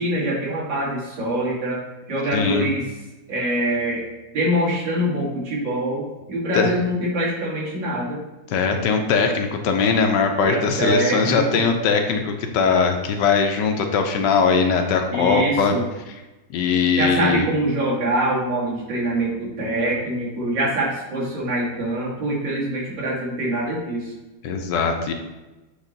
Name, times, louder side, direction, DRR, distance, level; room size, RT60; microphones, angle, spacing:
voice 1, 0.0-1.8 2.1-2.8 3.3-4.0 4.3-6.0 6.3-8.2 10.5-11.6 15.1-15.8 17.0-24.1, right 1 dB, 80° right, -5 dB, 2.5 m, -24 dB
voice 2, 2.3-2.7 6.5-6.7 8.5-15.7 16.5-17.5 24.4-25.1, left 5 dB, 75° left, 5 dB, 1.3 m, -20 dB
8.1 x 3.2 x 3.9 m, 1.1 s
omnidirectional pair, 2.0 m